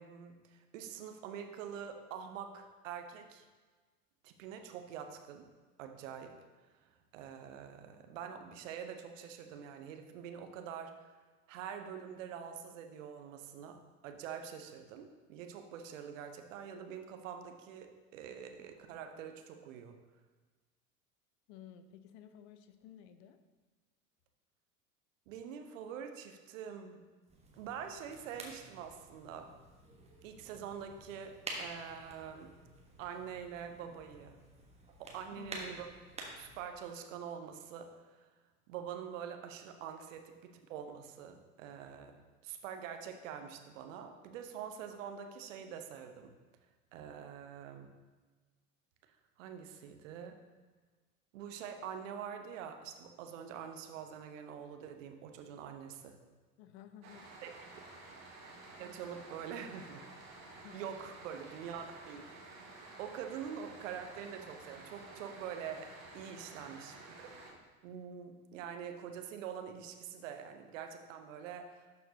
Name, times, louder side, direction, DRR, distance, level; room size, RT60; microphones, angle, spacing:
voice 1, 0.0-3.4 4.2-5.5 5.8-6.4 6.7-11.1 11.5-20.0 25.3-27.0 27.6-29.5 30.2-32.5 33.0-34.4 35.0-35.9 36.4-38.3 38.7-42.2 42.4-46.3 46.9-47.9 49.4-50.4 51.3-56.2 57.4-57.6 58.8-60.1 60.7-62.6 63.0-67.3 67.8-72.0, right 8 dB, 60° right, 6 dB, 0.9 m, -45 dB
voice 2, 21.5-23.4 35.3-35.8 56.6-57.3 60.5-61.1, left 9 dB, 50° left, 10 dB, 0.6 m, -54 dB
sound 1, 27.3-36.6, right 2 dB, 15° right, 1.2 m, -50 dB
sound 2, 57.0-67.5, right 2 dB, 35° right, 1.5 m, -52 dB
11.5 x 4.4 x 2.8 m, 1.3 s
figure-of-eight pair, 75°, 44 cm